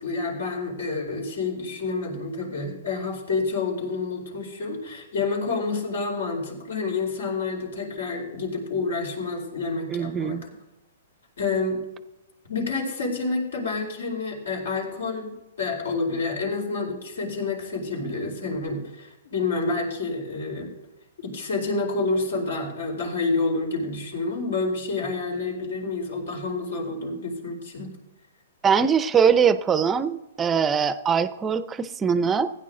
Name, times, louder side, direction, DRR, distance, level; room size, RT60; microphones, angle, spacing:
voice 1, 0.0-10.4 11.4-11.8 12.5-15.3 15.6-20.7 21.2-27.9, left 3 dB, 80° left, 1 dB, 4.5 m, -28 dB
voice 2, 9.9-10.4 28.6-32.5, right 6 dB, 15° right, 14 dB, 0.5 m, -22 dB
15.5 x 9.4 x 3.8 m, 0.98 s
hypercardioid pair, 150°, 0 cm